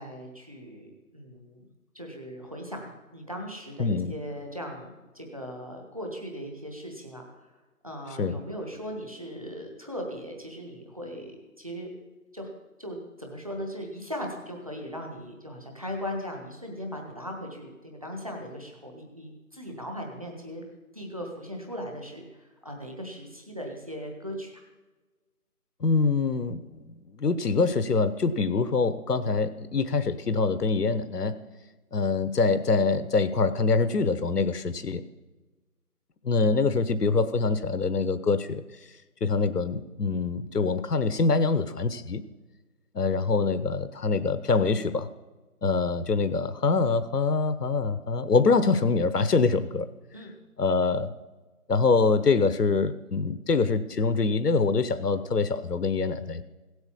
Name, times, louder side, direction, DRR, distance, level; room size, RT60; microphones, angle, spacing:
voice 1, 0.0-1.6 1.9-7.6 7.8-11.3 11.6-11.9 12.3-12.5 12.8-20.6 20.9-24.6 50.1-50.3, equal, 25° right, 1 dB, 1.5 m, -38 dB
voice 2, 3.8-4.1 8.2-8.4 25.8-31.4 31.9-35.0 36.2-38.6 39.2-42.2 42.9-45.1 45.6-49.9 50.6-51.1 51.7-56.4, left 4 dB, 85° left, 12 dB, 1.0 m, -24 dB
16.5 x 8.1 x 7.1 m, 1.2 s
figure-of-eight pair, 180°, 46 cm